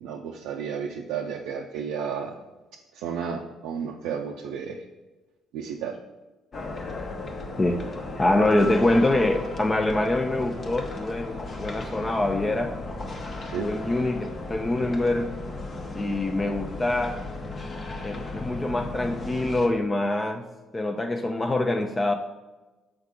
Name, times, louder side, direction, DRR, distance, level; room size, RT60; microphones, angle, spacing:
voice 1, 0.0-2.4 2.9-4.8 5.5-6.0 13.4-13.7, right 7 dB, 80° right, 0 dB, 0.4 m, -32 dB
sound 1, 6.5-19.7, left 2 dB, 45° left, 0.9 m, -35 dB
voice 2, 8.2-12.8 13.6-15.3 15.9-17.2 18.0-20.5 20.7-22.1, left 2 dB, 25° left, 4 dB, 0.5 m, -25 dB
6.4 x 4.7 x 3.6 m, 1.2 s
supercardioid pair, 65°, 0 cm